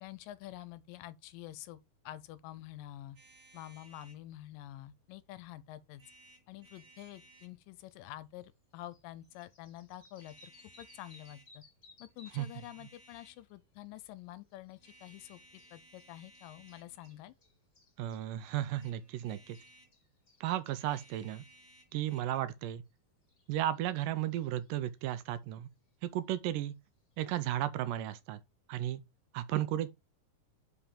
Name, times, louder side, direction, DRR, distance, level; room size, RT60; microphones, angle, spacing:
voice 1, 0.0-3.2 3.5-6.0 6.5-10.5 10.8-11.6 12.0-17.3, left 14 dB, 80° left, 2.1 m, -48 dB
sound 1, 3.2-4.2 5.9-7.6 9.1-9.5 10.1-11.5 12.1-13.5 14.8-17.2 18.6-20.0 20.6-22.4, right 1 dB, 40° right, 2.2 m, -61 dB
sound 2, 8.4-8.5 8.7-12.6 13.0-21.2 22.9-23.0 23.3-24.8 25.5-25.6 27.5-27.6, left 3 dB, 25° left, 2.6 m, -63 dB
voice 2, 18.0-19.6 20.4-21.4 21.9-22.8 23.5-25.7 26.0-26.7 27.2-28.4 28.7-29.0 29.3-29.9, right 13 dB, 80° right, 2.1 m, -34 dB
5.6 x 4.9 x 5.0 m
omnidirectional pair, 4.0 m